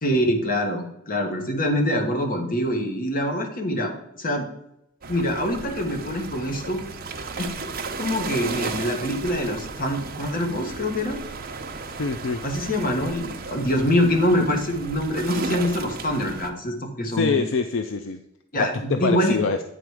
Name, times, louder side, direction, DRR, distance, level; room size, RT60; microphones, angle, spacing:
voice 1, 0.0-4.5 5.1-6.8 7.3-7.5 7.9-11.2 12.4-17.4 18.5-19.4, equal, 45° left, 3 dB, 1.3 m, -25 dB
sound 1, 5.0-16.5, right 4 dB, 45° right, 0.7 m, -35 dB
voice 2, 12.0-12.4 17.1-18.2 18.6-19.6, left 4 dB, 70° left, 8 dB, 0.4 m, -25 dB
9.4 x 4.0 x 4.8 m, 0.81 s
head